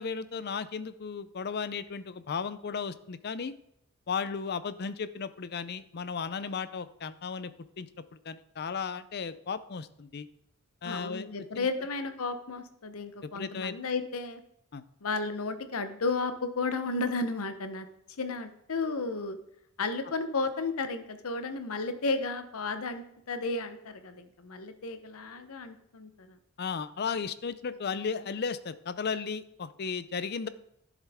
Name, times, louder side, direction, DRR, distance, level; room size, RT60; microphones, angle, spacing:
voice 1, 0.0-3.5 4.1-7.5 7.8-7.9 8.2-10.3 10.8-11.3 11.6-11.7 13.4-13.8 14.7-14.8 26.6-30.5, left 5 dB, 45° left, 14 dB, 0.5 m, -35 dB
voice 2, 10.8-14.4 15.0-17.9 18.2-19.4 19.8-26.4, left 3 dB, 70° left, 9 dB, 0.8 m, -33 dB
11.5 x 7.4 x 3.5 m, 0.75 s
head